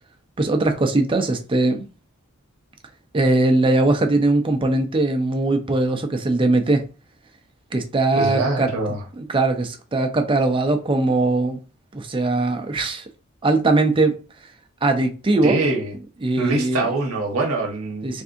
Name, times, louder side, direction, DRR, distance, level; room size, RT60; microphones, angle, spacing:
voice 1, 0.4-1.8 3.1-6.8 7.7-8.7 9.2-11.6 11.9-13.1 13.4-14.2 14.8-15.6 16.2-16.9 18.0-18.2, right 2 dB, 25° right, 0.5 m, -20 dB
voice 2, 8.1-9.1 15.4-15.9 16.4-18.2, right 2 dB, 70° right, 0.8 m, -24 dB
3.4 x 2.6 x 2.5 m
head